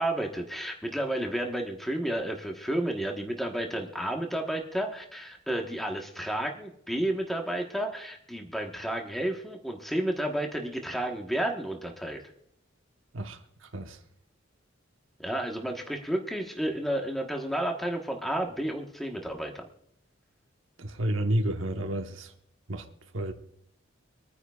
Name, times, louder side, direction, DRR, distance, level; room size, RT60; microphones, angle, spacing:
voice 1, 0.0-12.2 15.2-19.7, right 1 dB, ahead, 1.2 m, -31 dB
voice 2, 13.1-14.0 20.8-22.3 22.7-22.8 23.1-23.3, right 1 dB, 80° right, 1.1 m, -30 dB
25.0 x 9.8 x 2.4 m
head